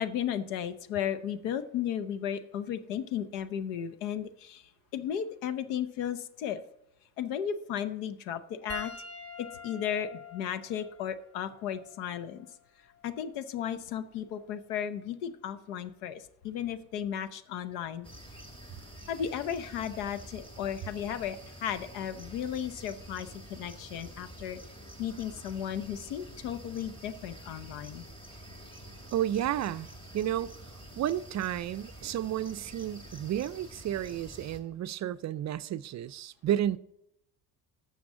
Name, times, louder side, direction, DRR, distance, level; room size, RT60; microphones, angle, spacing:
voice 1, 0.0-4.6 4.9-6.6 7.2-8.9 9.4-12.5 13.0-18.1 19.1-24.6 25.0-28.0, left 9 dB, 90° left, 0.9 m, -35 dB
Piano, 8.7-13.4 14.3-14.5 16.4-16.5, left 3 dB, 30° left, 1.7 m, -46 dB
sound 1, 18.0-34.6, right 1 dB, 10° left, 2.1 m, -48 dB
voice 2, 29.1-30.5 31.0-36.8, right 11 dB, 40° right, 0.4 m, -32 dB
12.0 x 7.0 x 3.7 m
supercardioid pair, 80°, 45 cm